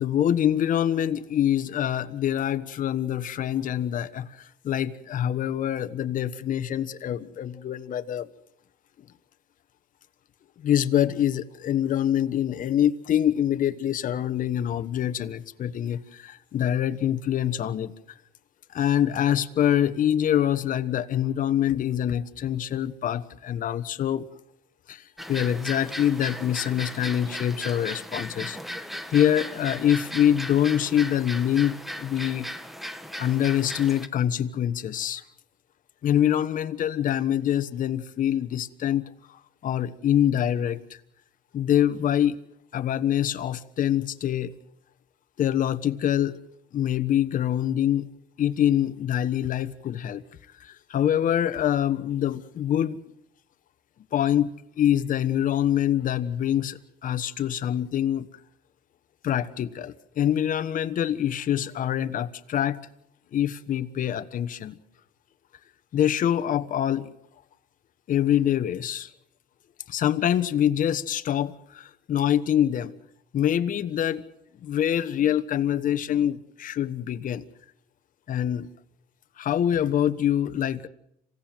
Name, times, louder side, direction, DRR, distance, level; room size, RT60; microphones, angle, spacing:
voice 1, 0.0-8.3 10.6-17.9 18.7-24.3 24.9-28.6 29.1-32.5 33.2-35.2 36.0-41.0 41.5-42.4 42.7-44.6 45.4-46.4 46.7-48.1 48.4-50.2 50.6-53.0 54.1-58.3 59.2-62.8 63.3-64.8 65.9-67.1 68.1-69.1 69.9-72.9 73.3-74.2 74.6-77.5 78.3-78.7 79.4-80.9, left 10 dB, 55° left, 10 dB, 1.2 m, -25 dB
sound 1, 25.2-34.1, equal, ahead, 1.4 m, -37 dB
27.0 x 16.5 x 7.6 m, 0.75 s
cardioid pair, 110°, 17 cm